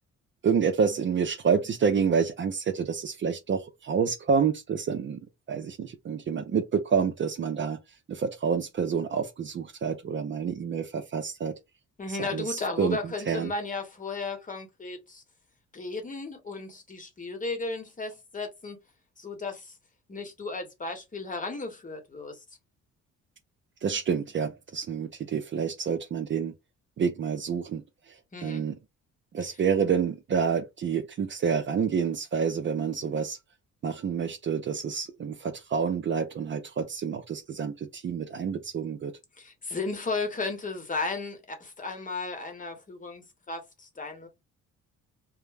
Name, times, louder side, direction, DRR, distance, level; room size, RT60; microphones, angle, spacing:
voice 1, 0.4-5.2 5.5-7.8 8.1-11.5 12.2-13.0 13.3-13.5 23.8-26.5 27.0-27.8 28.4-28.7 29.3-33.4 33.8-39.1, right 6 dB, 40° right, 0.5 m, -28 dB
voice 2, 12.0-15.2 15.7-18.8 19.2-19.7 20.1-22.4 28.3-28.6 39.4-44.3, left 3 dB, 25° left, 0.9 m, -34 dB
2.2 x 2.0 x 3.2 m
cardioid pair, 90°, 30 cm